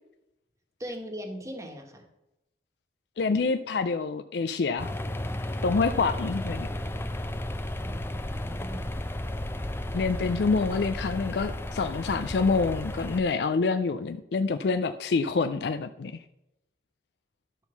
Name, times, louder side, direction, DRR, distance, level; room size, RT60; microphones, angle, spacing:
voice 1, 0.8-2.0 7.8-8.9, equal, 20° right, 4 dB, 1.4 m, -40 dB
voice 2, 3.2-4.9 5.6-6.7 9.9-16.2, left 4 dB, 65° left, 9 dB, 0.4 m, -27 dB
sound 1, 4.8-13.2, left 1 dB, 15° left, 0.5 m, -33 dB
11.5 x 4.4 x 6.9 m, 0.90 s
head